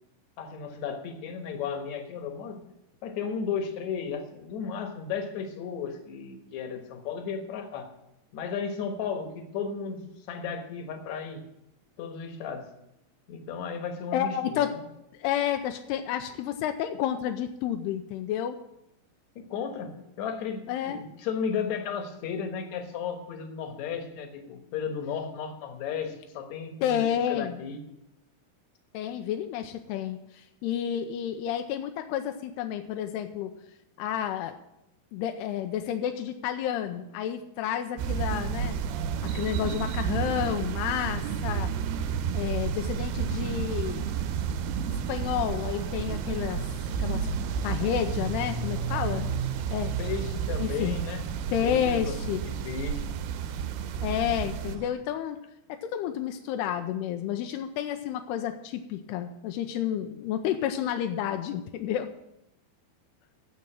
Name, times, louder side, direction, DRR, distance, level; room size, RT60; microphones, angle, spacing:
voice 1, 0.4-2.6 3.0-7.9 8.3-11.4 12.0-12.7 13.3-14.8 19.4-27.8 50.0-51.3 51.6-53.1, left 6 dB, 60° left, 6 dB, 2.1 m, -34 dB
voice 2, 14.1-14.7 15.2-18.6 20.7-21.0 26.8-27.6 28.9-33.5 34.0-34.5 35.1-38.8 39.2-41.7 42.3-44.1 44.9-46.6 47.0-47.3 47.6-49.3 49.7-50.0 50.6-51.0 51.5-52.4 54.0-55.4 55.7-62.1, left 10 dB, 90° left, 6 dB, 2.7 m, -30 dB
sound 1, 38.0-54.8, right 8 dB, 90° right, 2.7 m, -31 dB
sound 2, 38.5-54.9, right 4 dB, 55° right, 2.1 m, -39 dB
9.4 x 7.8 x 8.9 m, 0.85 s
omnidirectional pair, 4.6 m